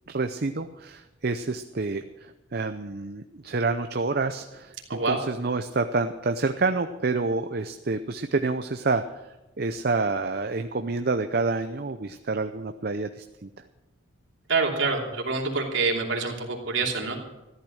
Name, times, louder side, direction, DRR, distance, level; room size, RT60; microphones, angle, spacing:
voice 1, 0.1-13.5, right 3 dB, 50° right, 8 dB, 0.6 m, -28 dB
voice 2, 14.5-17.2, right 4 dB, 65° right, 0 dB, 3.0 m, -26 dB
14.0 x 12.0 x 6.4 m, 1.0 s
head